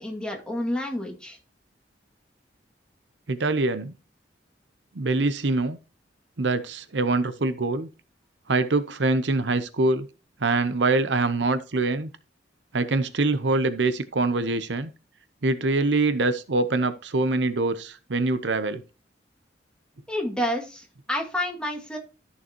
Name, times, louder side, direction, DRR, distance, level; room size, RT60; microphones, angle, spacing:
voice 1, 0.0-1.4 20.1-22.0, left 1 dB, 5° left, 2.2 m, -29 dB
voice 2, 3.3-3.9 4.9-5.8 6.4-7.9 8.5-10.1 10.4-12.1 12.7-14.9 15.4-18.8, right 3 dB, 75° right, 0.8 m, -24 dB
13.5 x 6.9 x 3.0 m
head